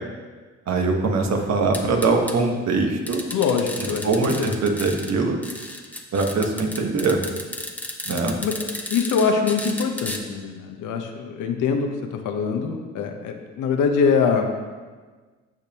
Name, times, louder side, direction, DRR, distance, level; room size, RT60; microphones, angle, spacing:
voice 1, 0.7-3.2 4.0-5.4 6.1-7.2 8.0-8.4, right 3 dB, 60° right, 3 dB, 1.3 m, -22 dB
sound 1, 1.7-2.4 3.1-5.1 5.4-10.2, left 1 dB, 5° left, 0.9 m, -33 dB
voice 2, 3.3-4.5 8.4-8.6 8.9-14.5, left 5 dB, 90° left, 4 dB, 1.0 m, -23 dB
14.5 x 5.2 x 3.0 m, 1.4 s
cardioid pair, 90°, 30 cm